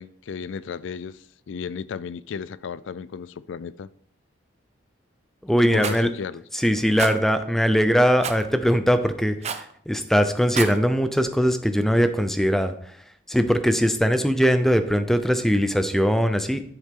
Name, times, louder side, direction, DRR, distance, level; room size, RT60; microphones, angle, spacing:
voice 1, 0.0-3.9 5.7-6.4, left 6 dB, 75° left, 0.4 m, -34 dB
voice 2, 5.4-6.1 6.5-12.7 13.3-16.6, equal, ahead, 0.6 m, -21 dB
Rattle, 5.8-6.0 7.0-7.2 8.2-8.4 9.4-9.7 10.4-10.8, right 6 dB, 35° right, 0.7 m, -29 dB
10.5 x 7.0 x 3.7 m
head